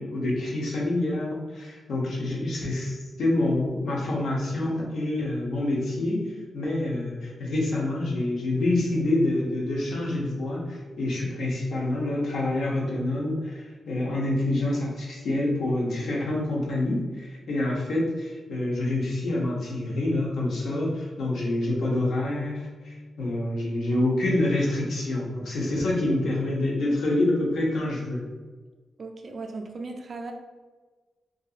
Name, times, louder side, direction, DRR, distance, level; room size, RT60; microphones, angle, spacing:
voice 1, 0.0-6.2 6.5-28.2, left 1 dB, 85° left, -3 dB, 0.7 m, -27 dB
voice 2, 29.0-30.3, right 3 dB, 50° right, 3 dB, 0.3 m, -37 dB
2.7 x 2.5 x 2.3 m, 1.3 s
wide cardioid pair, 110°, 0 cm